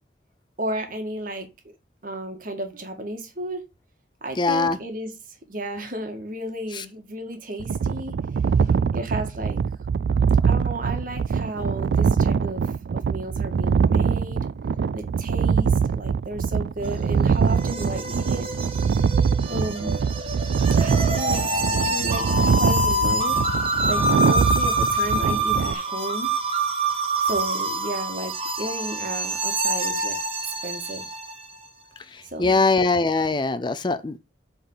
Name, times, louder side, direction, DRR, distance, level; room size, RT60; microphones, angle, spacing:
voice 1, 0.6-1.7 2.0-3.6 4.2-8.1 8.6-9.6 10.5-14.5 14.9-18.5 19.5-20.1 20.8-21.5 21.7-23.4 23.9-26.3 27.2-30.2 30.6-31.1 32.2-32.7, right 1 dB, 50° right, 1.8 m, -33 dB
voice 2, 4.4-4.8 6.7-6.8 32.1-34.2, left 3 dB, 25° left, 0.5 m, -22 dB
sound 1, 7.6-25.7, right 6 dB, 70° right, 0.3 m, -23 dB
sound 2, 16.8-31.4, right 1 dB, 30° right, 1.3 m, -26 dB
7.9 x 4.0 x 5.5 m
head